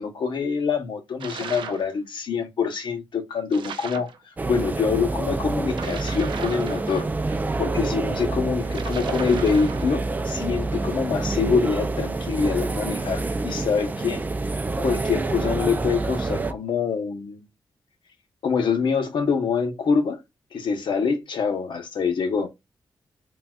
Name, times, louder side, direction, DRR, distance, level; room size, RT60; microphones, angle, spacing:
voice 1, 0.0-4.1 4.5-7.1 7.6-14.2 14.8-17.4 18.4-20.2 20.5-22.5, left 5 dB, 75° left, 0.9 m, -25 dB
sound 1, 1.2-1.9 3.5-4.2 5.7-7.4 8.7-10.0, right 6 dB, 80° right, 0.5 m, -37 dB
sound 2, 4.4-16.5, right 3 dB, 20° right, 0.3 m, -27 dB
4.0 x 2.3 x 2.3 m
wide cardioid pair, 140°, 8 cm